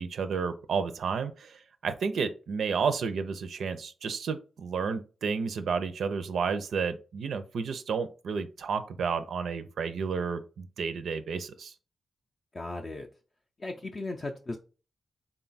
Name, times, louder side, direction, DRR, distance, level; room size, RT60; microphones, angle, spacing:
voice 1, 0.0-11.7, right 5 dB, 75° right, 10 dB, 0.5 m, -31 dB
voice 2, 12.5-13.1 13.6-14.6, left 2 dB, 30° left, 1 dB, 0.4 m, -36 dB
3.8 x 2.3 x 3.9 m, 0.35 s
wide cardioid pair, 125°, 0 cm